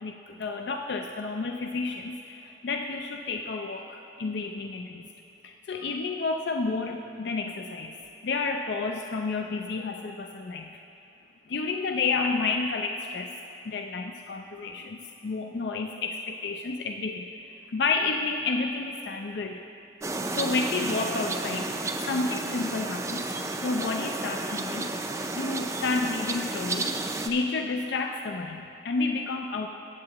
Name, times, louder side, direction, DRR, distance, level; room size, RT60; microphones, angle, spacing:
voice 1, 0.0-5.0 5.4-7.9 8.2-10.8 11.5-13.3 13.7-19.6 20.3-21.8 22.1-24.9 25.3-26.9 27.3-29.7, left 3 dB, 70° left, 4 dB, 0.4 m, -30 dB
sound 1, 20.0-27.3, right 2 dB, 15° right, 0.4 m, -32 dB
16.5 x 8.0 x 2.9 m, 2.8 s
head